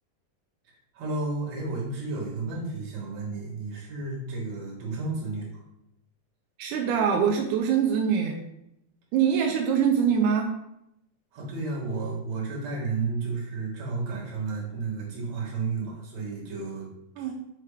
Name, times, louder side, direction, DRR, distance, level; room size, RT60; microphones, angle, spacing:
voice 1, 0.6-5.6 11.3-17.3, right 3 dB, 55° right, -5 dB, 2.9 m, -32 dB
voice 2, 6.6-8.4 9.1-10.5 17.2-17.3, right 7 dB, 80° right, 2 dB, 1.9 m, -23 dB
6.5 x 3.3 x 4.9 m, 0.83 s
omnidirectional pair, 4.0 m